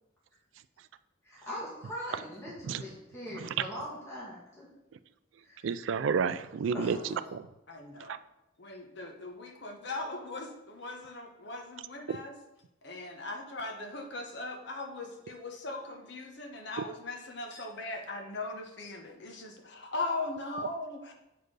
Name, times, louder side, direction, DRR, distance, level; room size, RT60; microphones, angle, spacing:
voice 1, 1.2-4.7 5.4-5.7 6.7-7.1, equal, 15° left, -8 dB, 2.3 m, -41 dB
voice 2, 3.3-3.7 5.6-7.4 8.1-8.2 12.1-12.2, right 6 dB, 75° right, 14 dB, 0.4 m, -31 dB
voice 3, 7.0-7.3 7.7-8.2 8.6-12.3 12.8-21.1, left 2 dB, 65° left, 3 dB, 1.2 m, -39 dB
8.1 x 4.4 x 4.8 m, 0.93 s
head